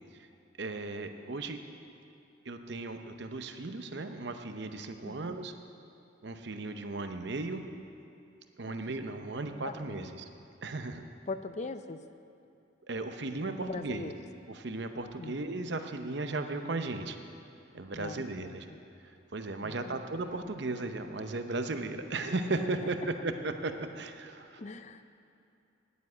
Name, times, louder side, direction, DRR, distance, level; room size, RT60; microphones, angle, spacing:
voice 1, 0.6-1.6 2.5-5.5 6.2-7.6 8.6-10.2 10.6-11.1 12.9-14.1 14.5-17.2 17.7-18.7 19.3-23.0 23.2-24.6, right 2 dB, 60° right, 7 dB, 0.8 m, -36 dB
voice 2, 5.0-5.4 8.7-8.8 9.6-10.1 11.3-12.0 13.6-14.1 15.2-15.4 17.9-18.8 19.6-20.0 24.6-25.0, left 3 dB, 35° left, 11 dB, 0.5 m, -41 dB
10.0 x 9.5 x 8.4 m, 2.6 s
head